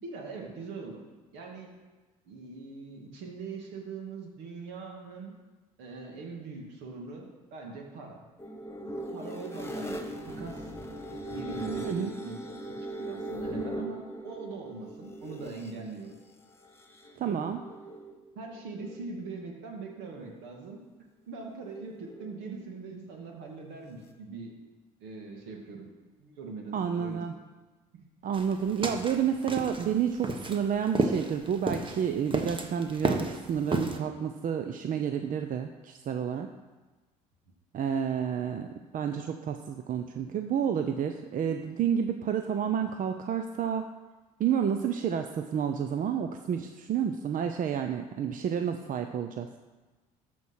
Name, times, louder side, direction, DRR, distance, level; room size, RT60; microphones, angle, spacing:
voice 1, 0.0-1.0 1.3-1.7 2.3-5.3 5.8-8.2 9.1-10.7 11.3-12.4 12.7-12.8 13.0-16.2 17.0-17.5 18.4-20.8 21.3-24.5 25.0-25.9 26.2-27.2 27.9-28.0, right 3 dB, 75° right, 1 dB, 2.1 m, -42 dB
sound 1, 8.4-15.7 16.7-18.2 18.5-19.2 21.7-22.5, right 1 dB, 15° left, 1.5 m, -39 dB
voice 2, 17.2-17.6 26.7-27.3 28.2-36.5 37.7-38.7 38.9-43.9 44.4-49.5, right 8 dB, 50° right, 7 dB, 0.6 m, -30 dB
sound 2, 28.3-34.0, right 3 dB, 30° right, 1.3 m, -32 dB
13.5 x 4.6 x 5.7 m, 1.2 s
hypercardioid pair, 65°, 18 cm